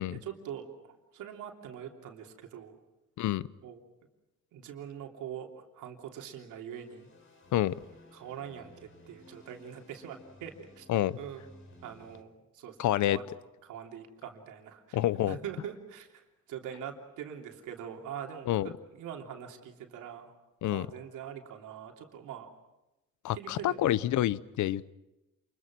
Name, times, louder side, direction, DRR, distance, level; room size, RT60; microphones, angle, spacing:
voice 1, 0.0-2.7 3.6-3.8 4.5-7.1 8.1-10.9 11.2-11.5 11.8-12.3 12.5-13.2 13.6-15.0 15.3-16.2 16.5-20.3 20.7-22.5 23.3-23.8, right 9 dB, 90° right, 3 dB, 3.2 m, -43 dB
sound 1, 6.5-12.2, left 1 dB, 40° left, 4.2 m, -56 dB
voice 2, 12.8-13.2 14.9-15.4 18.5-18.7 20.6-20.9 23.2-24.9, left 13 dB, 75° left, 19 dB, 0.8 m, -28 dB
28.0 x 22.5 x 6.2 m, 0.97 s
cardioid pair, 90°, 30 cm